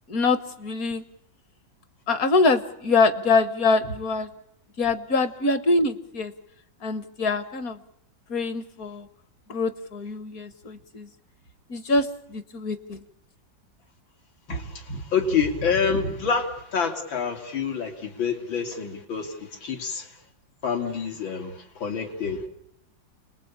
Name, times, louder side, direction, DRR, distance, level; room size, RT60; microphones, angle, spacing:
voice 1, 0.1-1.0 2.1-4.3 4.8-6.3 6.8-7.8 8.3-9.1 9.5-11.1 11.7-13.0, left 3 dB, 55° left, 12 dB, 1.5 m, -24 dB
voice 2, 14.5-20.1 20.6-22.5, left 5 dB, 85° left, 4 dB, 3.7 m, -27 dB
29.0 x 20.5 x 8.7 m, 0.76 s
omnidirectional pair, 2.1 m